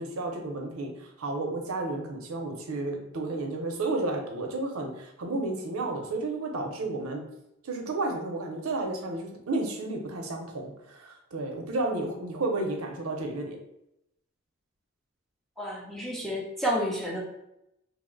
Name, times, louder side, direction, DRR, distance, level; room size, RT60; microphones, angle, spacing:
voice 1, 0.0-7.2 7.6-13.6, right 2 dB, 90° right, 2 dB, 0.6 m, -32 dB
voice 2, 15.6-17.2, equal, ahead, -3 dB, 0.5 m, -30 dB
2.8 x 2.1 x 3.8 m, 0.83 s
head